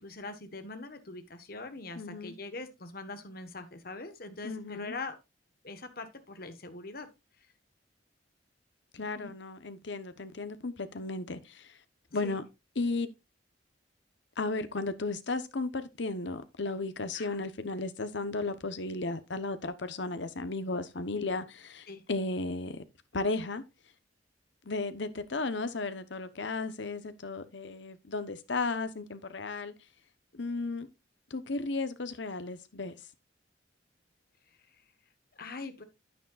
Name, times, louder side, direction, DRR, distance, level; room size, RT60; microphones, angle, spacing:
voice 1, 0.0-5.2 5.6-7.1 7.4-7.5 8.9-9.3 12.2-12.4 17.1-17.4 21.9-22.0 34.7-34.8 35.3-35.8, left 3 dB, 50° left, 1.3 m, -42 dB
voice 2, 2.0-2.3 4.4-4.9 8.9-11.7 12.1-12.5 12.8-13.1 14.4-22.8 23.1-23.6 24.6-29.7 30.3-30.9 31.3-33.0, left 3 dB, 70° left, 1.0 m, -34 dB
10.0 x 9.4 x 2.4 m
head